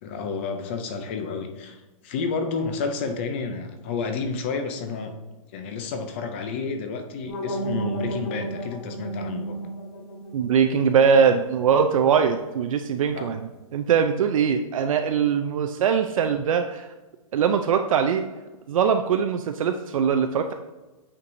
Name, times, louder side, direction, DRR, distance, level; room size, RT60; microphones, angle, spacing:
voice 1, 0.0-5.2 5.5-9.6 13.1-13.3, left 4 dB, 20° left, 6 dB, 0.4 m, -30 dB
sound 1, 7.3-12.2, right 2 dB, 45° left, 1.8 m, -33 dB
voice 2, 10.3-16.9 17.3-18.2 18.7-20.5, right 7 dB, 65° right, 6 dB, 0.4 m, -22 dB
8.5 x 4.6 x 2.6 m, 1.2 s
hypercardioid pair, 175°, 18 cm